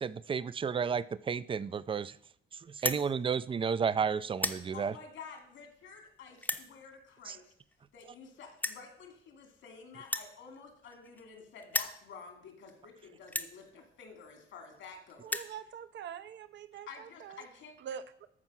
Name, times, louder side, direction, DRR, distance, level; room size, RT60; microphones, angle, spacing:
voice 1, 0.0-2.1 2.8-4.9 7.3-7.4, right 6 dB, 25° right, 17 dB, 0.4 m, -32 dB
sound 1, 2.7-3.0 3.7-3.9 4.2-4.6 5.4-5.5 6.4-6.7 7.7-7.8 8.0-8.1 8.6-8.8 10.0-11.3 11.6-12.0 12.7-12.8 13.3-13.5 14.4-14.5 14.8-14.9 15.1-15.5, left 2 dB, 10° left, 0.8 m, -34 dB
voice 2, 4.7-7.5 7.9-15.4 16.9-17.7, left 5 dB, 80° left, 4 dB, 2.5 m, -50 dB
voice 3, 15.2-17.5 17.8-18.3, right 8 dB, 65° right, 13 dB, 0.8 m, -44 dB
13.5 x 4.5 x 6.1 m, 0.68 s
cardioid pair, 90°, 20 cm